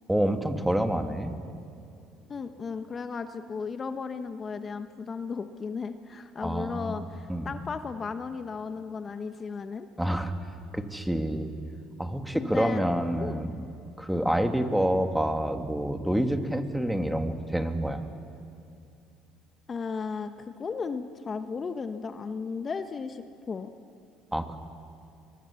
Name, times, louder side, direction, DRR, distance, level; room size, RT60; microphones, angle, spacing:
voice 1, 0.1-1.3 6.4-7.5 10.0-10.3 10.7-11.5 12.0-13.7 14.0-18.1 24.3-24.6, right 1 dB, 5° right, 6 dB, 1.9 m, -28 dB
voice 2, 2.3-9.9 12.3-12.8 13.1-13.4 19.7-23.7, left 5 dB, 35° left, 9 dB, 1.1 m, -35 dB
23.5 x 22.5 x 7.1 m, 2.6 s
supercardioid pair, 85°, 0 cm